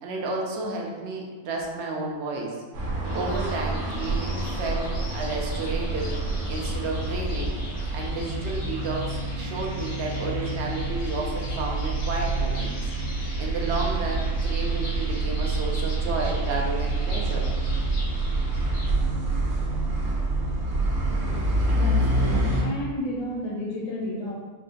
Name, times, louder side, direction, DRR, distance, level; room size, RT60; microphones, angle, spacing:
voice 1, 0.0-2.5 3.1-6.1 6.5-7.6 7.9-9.0 9.4-12.9 13.4-17.5, right 3 dB, 60° right, -1 dB, 0.7 m, -32 dB
sound 1, 2.7-22.6, right 2 dB, 80° right, 1.2 m, -27 dB
sound 2, 3.0-18.9, left 1 dB, 75° left, 1.3 m, -42 dB
voice 2, 21.7-24.3, left 1 dB, 60° left, -4 dB, 1.1 m, -32 dB
4.5 x 2.1 x 2.5 m, 1.4 s
omnidirectional pair, 1.6 m